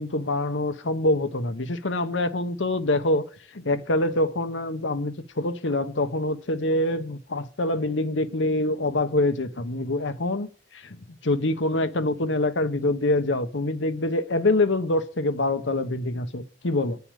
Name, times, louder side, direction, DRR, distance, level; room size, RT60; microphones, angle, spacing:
voice 1, 0.0-3.2 3.5-10.5 10.7-17.0, left 2 dB, 80° left, 1.1 m, -25 dB
9.6 x 7.0 x 6.5 m
head